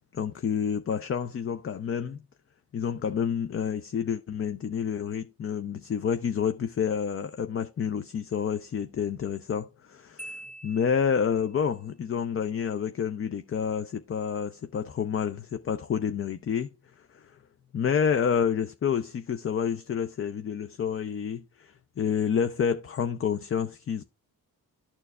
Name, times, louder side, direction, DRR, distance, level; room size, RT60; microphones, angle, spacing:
voice 1, 0.1-2.2 2.7-10.4 10.6-16.7 17.1-17.3 17.7-24.0, left 7 dB, 35° left, 0.5 m, -29 dB
Marimba xylophone, 10.2-11.6, equal, 5° left, 0.7 m, -45 dB
12.5 x 4.5 x 2.3 m
cardioid pair, 65°, 38 cm